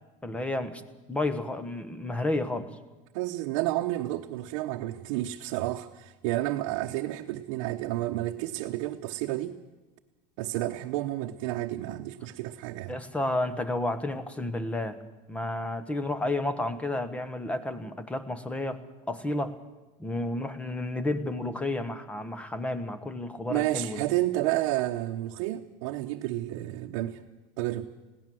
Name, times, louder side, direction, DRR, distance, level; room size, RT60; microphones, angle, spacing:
voice 1, 0.2-0.8 1.1-2.7 12.9-15.0 15.3-18.8 19.1-19.5 20.0-24.0, left 2 dB, 5° left, 13 dB, 1.0 m, -31 dB
voice 2, 3.1-9.6 10.4-12.9 23.5-27.2 27.6-27.9, right 15 dB, 65° right, 2 dB, 1.0 m, -30 dB
21.0 x 16.5 x 7.7 m, 1.2 s
cardioid pair, 160°, 17 cm